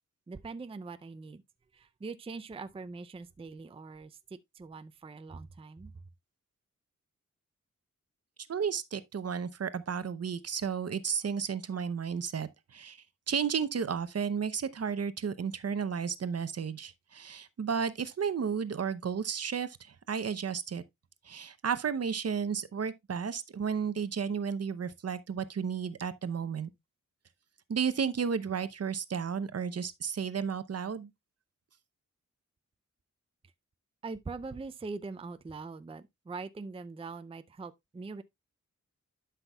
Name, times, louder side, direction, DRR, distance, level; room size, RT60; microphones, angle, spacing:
voice 1, 0.3-1.4 1.7-5.9 34.0-38.2, right 4 dB, 20° right, 0.4 m, -42 dB
voice 2, 8.5-13.0 13.3-20.8 21.2-26.7 27.7-31.1, right 6 dB, 55° right, 0.7 m, -33 dB
11.5 x 5.8 x 2.3 m
wide cardioid pair, 125°, 30 cm